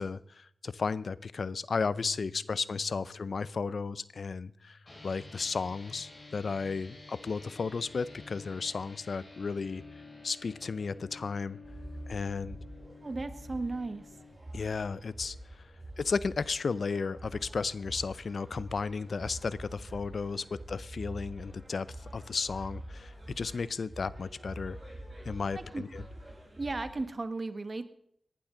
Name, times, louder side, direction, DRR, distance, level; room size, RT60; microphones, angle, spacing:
voice 1, 0.0-4.8 5.0-9.8 10.2-11.6 12.1-12.6 14.5-15.7 16.0-24.8 25.2-26.0, left 4 dB, 70° left, 18 dB, 0.5 m, -34 dB
Bass guitar, 1.8-8.0, left 3 dB, 20° left, 4.8 m, -57 dB
sound 1, 4.8-14.3, left 3 dB, 40° left, 5.6 m, -51 dB
sound 2, 11.6-27.1, right 1 dB, 25° right, 6.3 m, -46 dB
voice 2, 13.0-14.1 25.5-25.8 26.6-27.9, right 3 dB, 45° right, 10 dB, 1.4 m, -35 dB
18.5 x 11.5 x 3.8 m, 0.68 s
cardioid pair, 50°, 0 cm